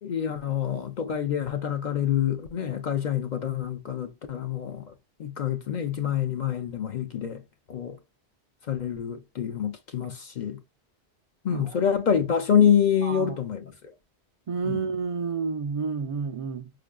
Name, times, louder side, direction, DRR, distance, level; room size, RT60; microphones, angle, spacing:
voice 1, 0.0-4.9 5.2-7.4 7.7-8.0 8.7-10.6 11.4-13.7 14.6-14.8, left 8 dB, 55° left, 0.5 m, -26 dB
voice 2, 13.0-13.4 14.5-16.7, right 5 dB, 65° right, 0.3 m, -30 dB
5.2 x 2.5 x 2.2 m
omnidirectional pair, 1.1 m